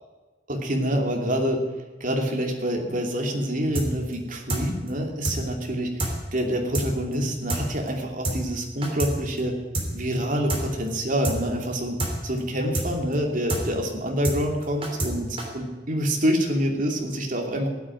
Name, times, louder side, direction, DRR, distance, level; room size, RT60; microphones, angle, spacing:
voice 1, 0.5-1.6 2.0-9.5 9.9-12.0 12.2-15.3 15.5-17.7, equal, 45° right, 2 dB, 2.8 m, -26 dB
sound 1, 3.8-4.1 4.5-4.6 4.9-5.0 5.2-5.4 5.6-5.7 6.0-6.1 6.4-6.5 6.7-6.9 7.1-7.2 7.5-7.6 7.9-8.0 8.2-8.4 8.6-9.1 9.4-9.5 9.7-9.9 10.1-10.2 10.5-10.6 10.9-11.0 11.2-11.4 11.6-11.7 12.0-12.1 12.4-12.5 12.7-12.9 13.1-13.2 13.5-13.6 13.9-14.0 14.2-14.4 14.6-15.1 15.4-15.5, right 2 dB, 30° right, 3.2 m, -27 dB
16.0 x 9.1 x 9.4 m, 1.3 s
head